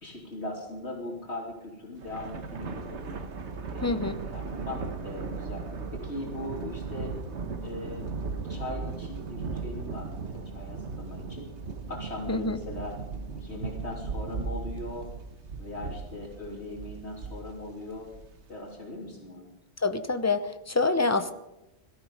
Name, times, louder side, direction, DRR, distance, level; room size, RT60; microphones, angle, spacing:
voice 1, 0.0-3.1 3.7-5.6 5.9-7.1 7.6-8.1 8.5-11.5 11.9-13.0 13.3-15.1 15.6-18.1 18.5-19.4, left 1 dB, 75° left, -1 dB, 3.4 m, -39 dB
Thunder, 2.0-18.6, right 4 dB, 85° right, 1.5 m, -37 dB
voice 2, 3.8-4.2 12.3-12.6 19.8-21.3, left 3 dB, 15° left, 10 dB, 0.7 m, -26 dB
17.5 x 13.5 x 5.4 m, 0.91 s
omnidirectional pair, 1.1 m